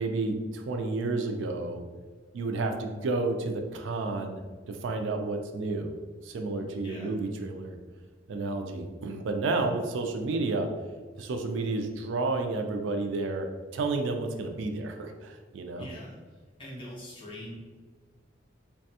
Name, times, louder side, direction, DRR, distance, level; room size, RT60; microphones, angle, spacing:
voice 1, 0.0-1.8 2.3-4.4 4.7-5.9 6.2-7.8 8.3-10.7 11.2-13.5 13.7-15.8, right 3 dB, 80° right, 5 dB, 0.4 m, -31 dB
voice 2, 15.8-16.2 16.6-17.6, equal, 25° left, -4 dB, 0.7 m, -42 dB
3.2 x 2.2 x 2.7 m, 1.4 s
head